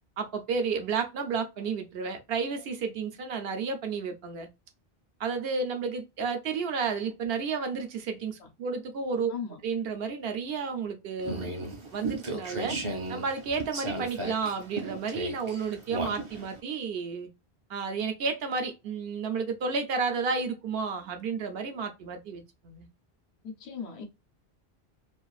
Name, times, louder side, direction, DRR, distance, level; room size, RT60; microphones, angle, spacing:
voice 1, 0.2-4.5 5.2-9.3 9.6-11.6 11.9-12.8 13.1-17.3 17.7-22.9, right 5 dB, 70° right, 0.8 m, -32 dB
voice 2, 9.3-9.6 23.4-24.1, left 6 dB, 90° left, 1.0 m, -38 dB
sound 1, 11.2-16.6, right 2 dB, 35° right, 0.6 m, -35 dB
2.5 x 2.3 x 2.3 m
omnidirectional pair, 1.1 m